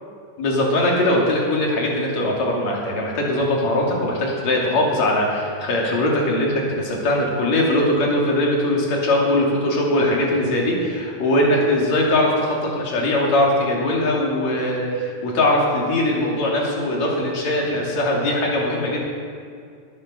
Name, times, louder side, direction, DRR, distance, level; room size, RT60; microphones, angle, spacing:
voice 1, 0.4-19.0, left 1 dB, 65° left, -2 dB, 3.8 m, -21 dB
21.0 x 8.6 x 6.6 m, 2.3 s
omnidirectional pair, 3.4 m